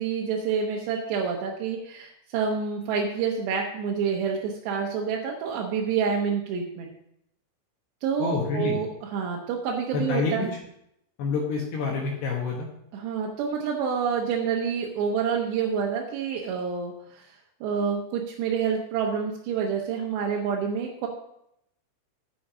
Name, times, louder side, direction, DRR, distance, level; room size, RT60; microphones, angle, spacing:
voice 1, 0.0-6.9 8.0-10.5 12.9-17.3 17.6-21.1, right 6 dB, 70° right, -1 dB, 2.9 m, -28 dB
voice 2, 8.2-8.8 9.9-10.5 11.2-12.7, left 4 dB, 65° left, -1 dB, 3.1 m, -27 dB
11.0 x 8.5 x 5.0 m, 0.77 s
omnidirectional pair, 5.7 m